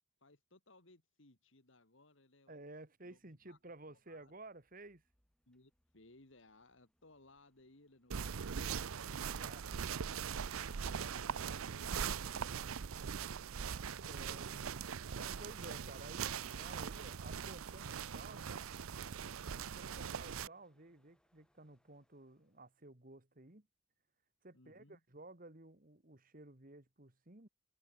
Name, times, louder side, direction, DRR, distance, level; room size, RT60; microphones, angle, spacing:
voice 1, 0.2-2.6 3.0-3.6 3.9-4.3 5.5-9.2 10.6-12.0 16.6-17.1 19.7-20.2 24.5-25.0, left 2 dB, 65° left, 2.5 m, -65 dB
voice 2, 2.5-5.0 9.1-9.6 10.8-13.0 14.0-14.8 15.2-18.7 19.6-23.7 24.4-27.5, right 2 dB, 40° right, 2.0 m, -55 dB
sound 1, 3.0-22.8, equal, 5° left, 7.2 m, -78 dB
sound 2, 8.1-20.5, right 7 dB, 80° right, 0.6 m, -41 dB
head